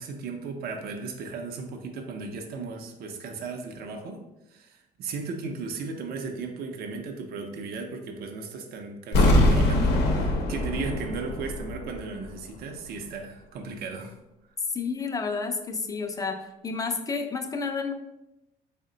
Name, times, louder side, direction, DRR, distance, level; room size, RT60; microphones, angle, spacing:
voice 1, 0.0-4.2 4.5-14.1, right 4 dB, 65° right, 3 dB, 0.6 m, -36 dB
sound 1, 9.1-12.0 12.3-12.4, left 1 dB, 80° left, 0.6 m, -23 dB
voice 2, 14.7-16.4 16.6-17.9, left 4 dB, 20° left, 5 dB, 0.4 m, -30 dB
3.6 x 2.1 x 3.8 m, 0.92 s
cardioid pair, 110°, 17 cm